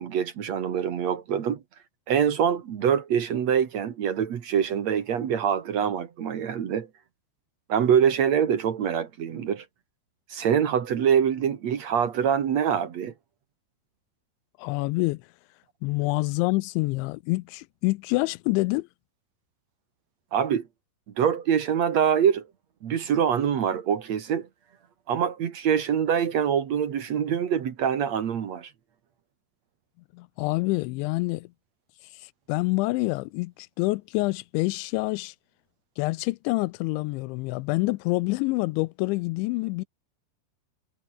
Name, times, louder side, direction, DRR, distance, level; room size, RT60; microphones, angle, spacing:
voice 1, 0.0-1.6 2.1-6.9 7.7-9.7 10.3-13.1 20.3-20.7 21.2-22.5 22.8-24.5 25.1-28.7, right 8 dB, 55° right, 2.1 m, -24 dB
voice 2, 14.6-15.2 15.8-18.9 30.1-31.5 32.5-35.3 36.0-39.8, left 23 dB, 85° left, 2.9 m, -27 dB
omnidirectional pair, 5.3 m